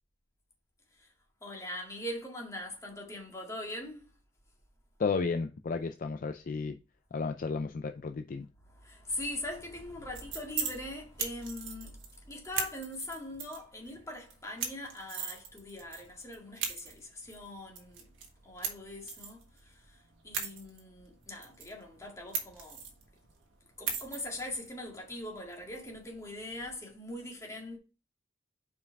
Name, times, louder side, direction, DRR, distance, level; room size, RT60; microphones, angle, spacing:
voice 1, 1.4-4.1 8.7-18.0 18.4-20.0 20.2-22.8 23.8-27.8, left 1 dB, 15° left, 1.9 m, -41 dB
voice 2, 5.0-6.8 7.1-8.5, left 4 dB, 45° left, 0.4 m, -33 dB
sound 1, 9.9-26.8, right 6 dB, 75° right, 1.6 m, -41 dB
5.5 x 4.8 x 4.6 m
head